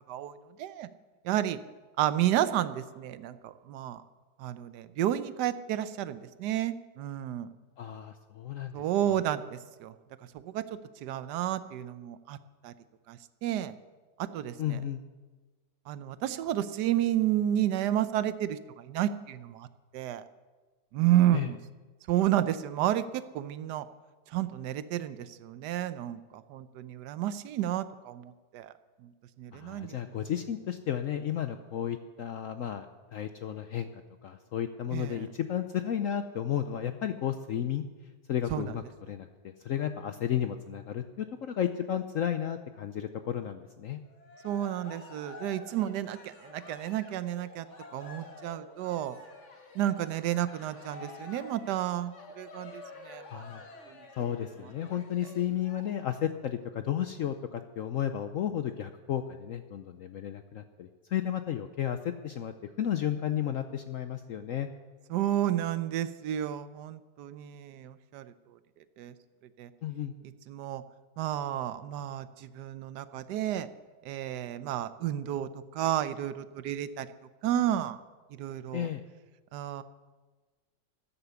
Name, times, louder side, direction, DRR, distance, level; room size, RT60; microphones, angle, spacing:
voice 1, 0.1-0.9 1.2-1.6 2.0-4.0 4.4-7.5 8.7-10.0 10.3-12.4 12.6-12.7 13.1-13.7 14.2-14.8 15.9-19.7 19.9-20.2 20.9-21.6 22.1-23.9 24.3-28.7 29.0-29.1 29.4-30.3 34.9-35.3 38.5-38.7 44.4-47.7 47.9-49.2 49.7-53.4 53.9-54.1 65.1-68.6 69.0-69.1 69.6-69.7 70.5-70.8 71.2-73.7 74.0-77.1 77.4-78.0 78.4-78.9 79.5-79.8, right 12 dB, 75° right, 13 dB, 1.2 m, -31 dB
voice 2, 7.8-8.8 14.6-15.0 21.3-21.5 29.5-37.8 38.3-44.0 53.3-53.6 54.2-64.7 69.8-70.1 78.7-79.0, left 10 dB, 65° left, 8 dB, 0.8 m, -33 dB
Cheering, 44.1-55.8, left 3 dB, 45° left, 1.7 m, -49 dB
13.5 x 10.0 x 7.0 m, 1.3 s
omnidirectional pair, 1.9 m